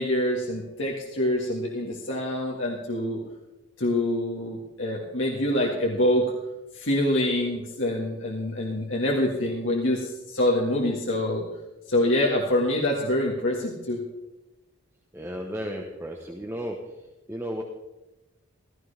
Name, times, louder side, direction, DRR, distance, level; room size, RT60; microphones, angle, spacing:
voice 1, 0.0-3.2 3.8-6.3 6.7-11.5 11.9-14.0, left 1 dB, 65° left, -3 dB, 1.8 m, -25 dB
voice 2, 15.1-16.9 17.3-17.6, equal, 10° right, 2 dB, 1.0 m, -34 dB
16.0 x 13.5 x 3.4 m, 1.0 s
head